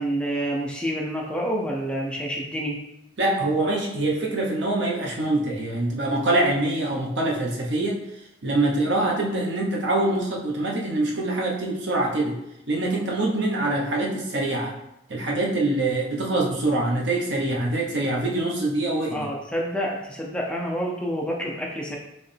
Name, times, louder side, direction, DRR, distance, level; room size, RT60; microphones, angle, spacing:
voice 1, 0.0-2.8 19.1-22.0, equal, 5° left, -2 dB, 0.6 m, -28 dB
voice 2, 3.2-8.0 8.4-12.4 12.7-14.7 15.1-19.3, right 2 dB, 80° right, -1 dB, 0.9 m, -24 dB
4.5 x 3.2 x 3.3 m, 0.84 s
head